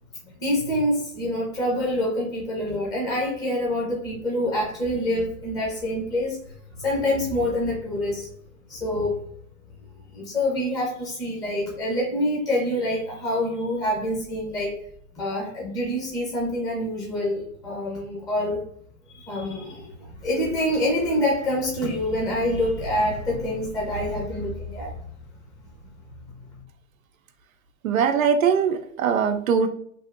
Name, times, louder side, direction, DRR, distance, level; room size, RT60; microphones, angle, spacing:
voice 1, 0.4-6.4 6.8-8.3 8.7-9.2 10.1-14.8 15.2-18.7 19.1-24.9, left 1 dB, 10° left, -4 dB, 0.6 m, -26 dB
voice 2, 27.8-29.7, right 6 dB, 85° right, 7 dB, 0.7 m, -21 dB
3.4 x 2.6 x 2.5 m, 0.64 s
hypercardioid pair, 135°, 40 cm